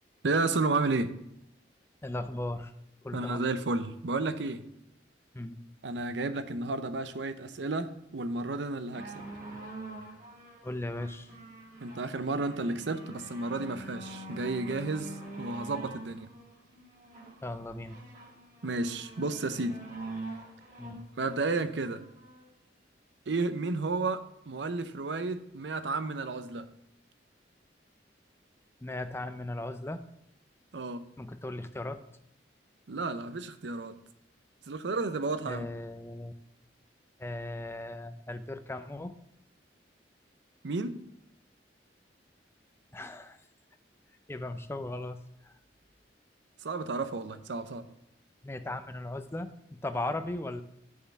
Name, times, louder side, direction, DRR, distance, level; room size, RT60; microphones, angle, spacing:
voice 1, 0.2-1.1 3.1-4.6 5.8-9.2 11.8-16.3 18.6-19.8 21.2-22.0 23.3-26.7 30.7-31.0 32.9-33.9 34.7-35.7 40.6-41.0 46.6-47.9, right 3 dB, 70° right, 11 dB, 0.6 m, -32 dB
voice 2, 2.0-2.7 3.0-3.5 5.3-5.6 10.6-11.3 17.4-18.0 20.8-21.0 28.8-30.0 31.2-32.0 35.5-36.3 37.2-39.1 42.9-43.4 44.3-45.2 45.4-45.5 48.4-50.6, left 2 dB, 15° left, 10 dB, 0.5 m, -37 dB
sound 1, 8.9-22.5 23.3-23.4, right 2 dB, 45° right, 1.8 m, -45 dB
6.5 x 5.5 x 5.8 m, 0.79 s
head